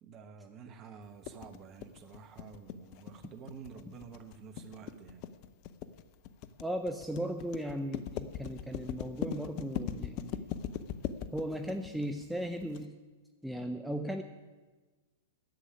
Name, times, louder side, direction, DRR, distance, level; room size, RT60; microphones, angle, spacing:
voice 1, 0.0-5.3, right 6 dB, 30° right, 9 dB, 1.2 m, -50 dB
sound 1, 1.2-12.8, left 9 dB, 45° left, 0.7 m, -40 dB
voice 2, 6.6-10.5 11.3-12.9 13.4-14.2, equal, 5° right, 6 dB, 0.6 m, -37 dB
10.5 x 8.3 x 9.9 m, 1.3 s
figure-of-eight pair, 100°, 0 cm